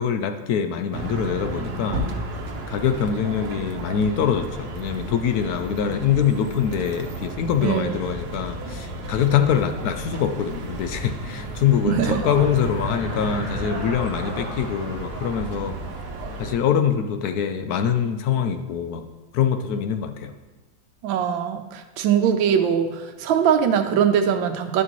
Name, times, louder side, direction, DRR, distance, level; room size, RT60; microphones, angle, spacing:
voice 1, 0.0-2.1 2.7-15.8 16.4-19.0 19.3-20.3, left 8 dB, 70° left, 8 dB, 0.9 m, -24 dB
sound 1, 0.9-16.6, right 2 dB, 60° right, 1.3 m, -33 dB
voice 2, 7.6-8.0 11.8-12.2 21.0-24.8, right 8 dB, 85° right, 6 dB, 1.4 m, -21 dB
sound 2, 11.5-17.2, equal, 35° left, 2.9 m, -37 dB
11.0 x 6.3 x 3.0 m, 1.2 s
omnidirectional pair, 2.1 m